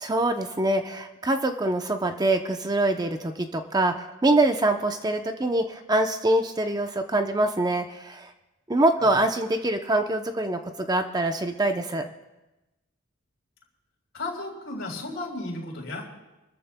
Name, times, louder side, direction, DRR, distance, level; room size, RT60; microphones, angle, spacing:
voice 1, 0.0-8.3 8.7-12.1, right 2 dB, 20° right, 6 dB, 0.6 m, -24 dB
voice 2, 14.1-16.1, left 2 dB, 65° left, 0 dB, 3.8 m, -34 dB
28.5 x 14.0 x 2.2 m, 1.0 s
head